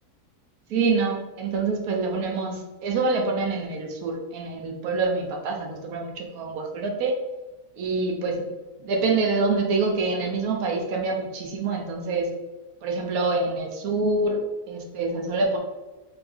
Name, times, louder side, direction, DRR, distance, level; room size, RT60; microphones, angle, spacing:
voice 1, 0.7-7.1 7.8-8.4 8.8-12.3 12.8-14.4 14.7-15.6, right 3 dB, 70° right, 1 dB, 1.2 m, -26 dB
3.6 x 2.9 x 3.5 m, 1.1 s
omnidirectional pair, 1.7 m